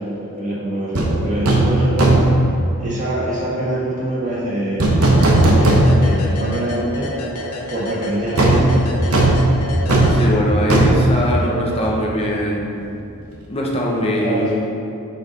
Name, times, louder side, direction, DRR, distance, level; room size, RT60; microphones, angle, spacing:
voice 1, 0.0-2.3 2.8-5.1 5.4-7.1 7.7-8.9 14.2-14.5, right 1 dB, 35° right, -8 dB, 1.5 m, -24 dB
sound 1, 0.9-1.1 1.4-1.7 2.0-2.4 4.8-6.2 6.6-6.7 8.4-12.0 12.3-12.4, right 1 dB, 85° right, 1.0 m, -15 dB
sound 2, 5.0-10.8, left 2 dB, 85° left, 0.8 m, -31 dB
voice 2, 10.1-12.8 13.5-14.7, equal, 25° left, -3 dB, 0.8 m, -21 dB
6.0 x 4.0 x 5.2 m, 2.7 s
head